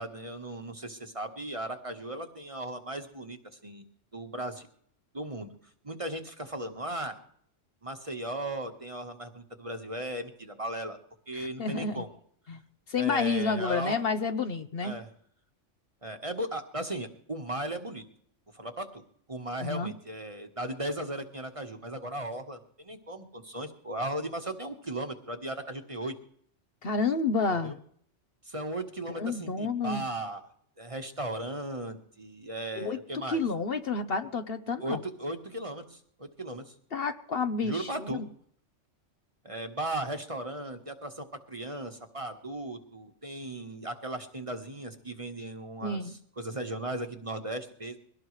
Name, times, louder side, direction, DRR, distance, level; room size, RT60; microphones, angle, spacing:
voice 1, 0.0-3.9 4.1-4.7 5.1-5.5 5.8-7.2 7.8-11.0 11.3-12.1 13.0-13.9 14.8-15.1 16.0-18.0 18.5-26.1 27.5-27.8 28.4-30.4 30.8-33.4 34.8-36.7 37.6-38.2 39.4-48.0, right 1 dB, 30° right, 6 dB, 1.3 m, -37 dB
voice 2, 11.3-12.0 12.5-12.6 12.9-14.9 19.6-19.9 26.8-27.8 29.1-30.0 32.8-35.0 36.9-38.2 45.8-46.1, left 4 dB, 55° left, 9 dB, 1.0 m, -30 dB
22.5 x 17.5 x 3.2 m, 0.65 s
omnidirectional pair, 1.3 m